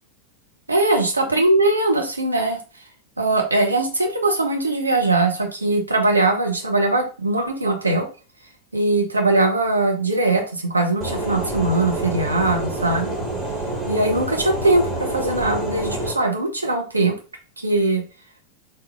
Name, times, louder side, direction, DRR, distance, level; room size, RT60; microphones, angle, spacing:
voice 1, 0.7-2.6 3.2-8.1 8.7-13.1 13.9-17.2 17.6-18.0, right 2 dB, 80° right, 2 dB, 0.9 m, -20 dB
sound 1, 11.0-16.1, right 1 dB, 30° right, 1.7 m, -27 dB
4.3 x 2.7 x 3.5 m, 0.34 s
figure-of-eight pair, 90°, 0 cm